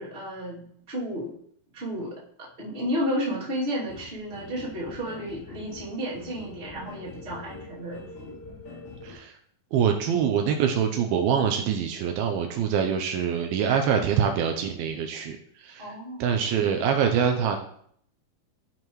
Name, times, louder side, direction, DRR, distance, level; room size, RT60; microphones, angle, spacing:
voice 1, 0.0-1.3 1.7-8.4 15.8-16.2, equal, 20° right, -7 dB, 2.2 m, -32 dB
sound 1, 3.9-9.1, left 3 dB, 60° left, 4.7 m, -44 dB
voice 2, 9.0-9.3 9.7-15.9 16.2-17.6, right 7 dB, 80° right, 4 dB, 2.4 m, -25 dB
13.5 x 5.7 x 3.1 m, 0.65 s
omnidirectional pair, 4.5 m